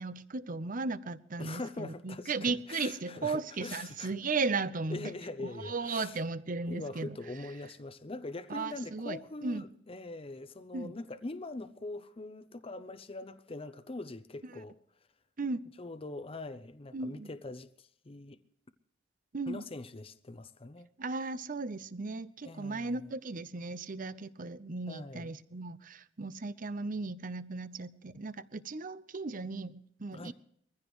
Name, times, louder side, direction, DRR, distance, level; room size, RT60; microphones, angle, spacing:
voice 1, 0.0-5.1 5.6-7.1 8.5-9.6 10.7-10.9 15.4-15.6 16.9-17.3 19.3-19.6 21.0-30.3, right 3 dB, 45° right, 0.8 m, -36 dB
voice 2, 1.4-4.1 4.9-6.2 6.7-14.8 15.8-18.4 19.5-20.9 22.4-23.1 24.9-25.3 30.1-30.3, left 2 dB, 30° left, 0.7 m, -43 dB
22.5 x 15.5 x 3.1 m
head